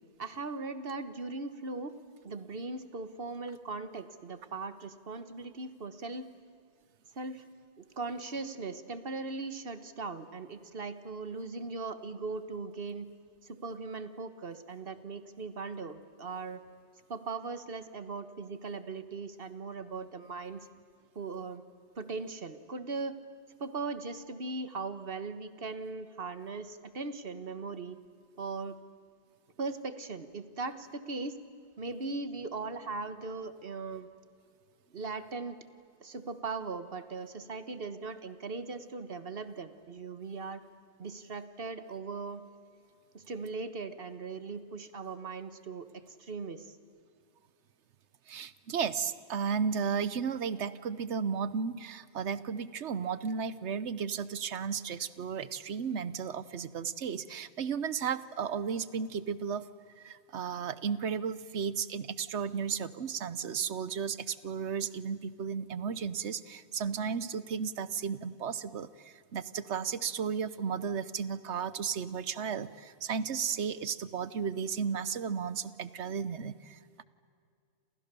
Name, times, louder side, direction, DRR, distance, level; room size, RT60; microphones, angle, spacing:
voice 1, 0.2-1.9 2.2-6.3 7.1-7.5 7.8-13.1 13.4-16.6 17.1-20.7 21.1-21.6 21.9-23.2 23.6-28.0 28.4-28.8 29.6-31.4 31.8-34.1 34.9-35.6 36.0-40.6 41.0-42.4 43.1-46.8, right 3 dB, 55° right, 11 dB, 1.5 m, -39 dB
voice 2, 48.3-59.6 60.0-77.0, right 6 dB, 75° right, 16 dB, 1.2 m, -34 dB
29.5 x 28.0 x 6.9 m, 2.2 s
omnidirectional pair, 1.2 m